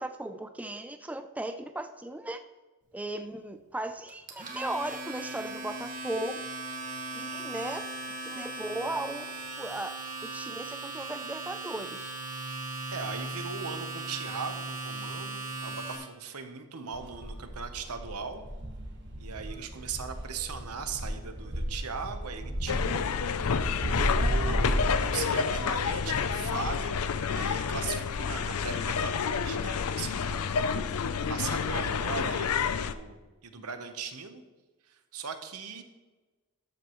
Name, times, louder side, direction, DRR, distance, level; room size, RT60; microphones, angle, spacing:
voice 1, 0.0-2.4 2.9-6.4 7.1-7.9 8.2-9.9 10.3-12.1, right 1 dB, 5° right, 8 dB, 0.4 m, -36 dB
Domestic sounds home sounds, 4.1-16.0, right 2 dB, 35° right, 1.7 m, -38 dB
voice 2, 12.9-18.4 19.2-23.1 23.7-27.0 27.3-30.9 31.3-34.4 34.8-35.8, right 5 dB, 85° right, 8 dB, 1.0 m, -39 dB
sound 1, 16.9-26.6, right 1 dB, 55° right, 1.4 m, -34 dB
sound 2, 22.7-32.9, left 6 dB, 75° left, 0.5 m, -29 dB
13.5 x 8.1 x 3.1 m, 1.2 s
head